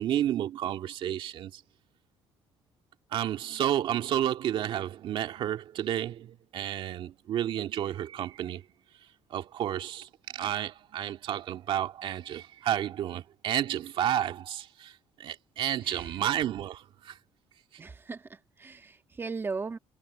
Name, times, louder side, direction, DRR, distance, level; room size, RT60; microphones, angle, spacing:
voice 1, 0.0-1.6 3.1-8.6 9.3-17.2, right 11 dB, 65° right, 2.0 m, -31 dB
voice 2, 15.8-16.3 17.8-19.8, right 4 dB, 25° right, 1.9 m, -38 dB
cardioid pair, 115°, 9 cm